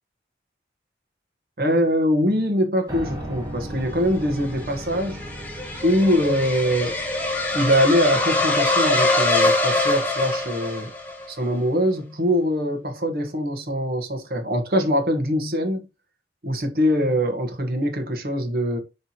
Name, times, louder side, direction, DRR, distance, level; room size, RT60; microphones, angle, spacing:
voice 1, 1.6-5.2 5.8-7.0 7.5-10.9 11.3-15.9 16.4-18.8, equal, 55° right, 1.4 m, -23 dB
Piano, 2.9-10.9, right 1 dB, 20° right, 2.0 m, -38 dB
sound 1, 4.2-11.3, left 2 dB, 10° left, 1.1 m, -23 dB
9.9 x 3.4 x 2.9 m
head